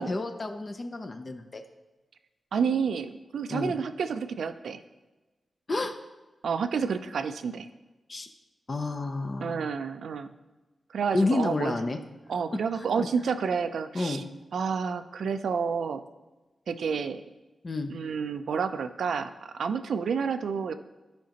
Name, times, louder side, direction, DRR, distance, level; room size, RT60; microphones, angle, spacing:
voice 1, 0.0-1.6 3.5-3.7 5.7-5.9 8.1-8.3 8.7-9.7 11.1-12.0 12.7-13.1 13.9-14.2 17.6-17.9, left 2 dB, 30° left, 6 dB, 0.5 m, -30 dB
voice 2, 2.5-4.8 6.4-7.7 9.4-10.3 10.9-11.8 12.3-14.2 14.5-16.0 16.7-17.2 17.9-20.7, right 6 dB, 85° right, 10 dB, 0.4 m, -29 dB
12.5 x 5.1 x 2.9 m, 1.1 s
wide cardioid pair, 145°, 0 cm